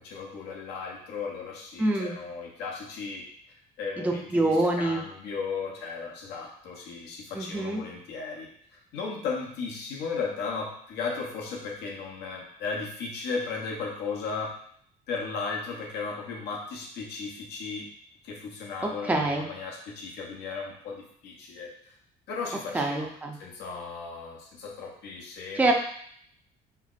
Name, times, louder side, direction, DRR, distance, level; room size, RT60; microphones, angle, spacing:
voice 1, 0.0-3.2 3.8-8.5 8.9-14.5 15.1-17.9 18.2-22.0 22.3-23.1 23.4-25.7, left 4 dB, 80° left, -1 dB, 0.8 m, -35 dB
voice 2, 1.8-2.1 4.0-5.0 7.3-7.8 19.1-19.4 22.7-23.4 25.6-25.7, right 2 dB, 10° right, 1 dB, 0.5 m, -25 dB
5.4 x 2.0 x 2.4 m, 0.64 s
cardioid pair, 110°, 17 cm